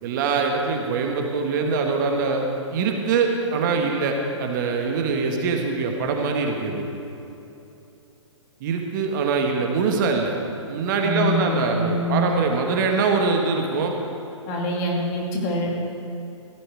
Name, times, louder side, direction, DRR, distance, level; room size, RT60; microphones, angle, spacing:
voice 1, 0.0-6.8 8.6-10.4 10.7-14.0, right 4 dB, 40° right, 2 dB, 1.5 m, -23 dB
voice 2, 11.0-12.3 14.5-15.7, left 1 dB, 35° left, -1 dB, 2.7 m, -25 dB
15.5 x 11.5 x 4.7 m, 2.9 s
figure-of-eight pair, 125°, 16 cm